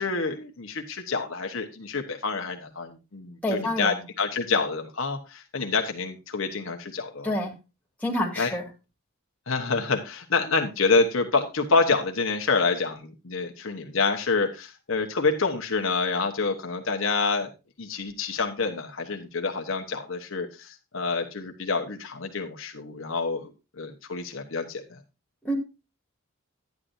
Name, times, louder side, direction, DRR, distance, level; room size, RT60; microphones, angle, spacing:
voice 1, 0.0-7.3 8.4-8.5 9.5-17.5 17.8-25.0, left 4 dB, 65° left, 4 dB, 1.1 m, -27 dB
voice 2, 3.4-4.0 7.2-7.5 8.0-8.7 25.4-25.5, left 1 dB, 5° left, -1 dB, 2.2 m, -27 dB
11.5 x 9.6 x 2.7 m, 0.28 s
head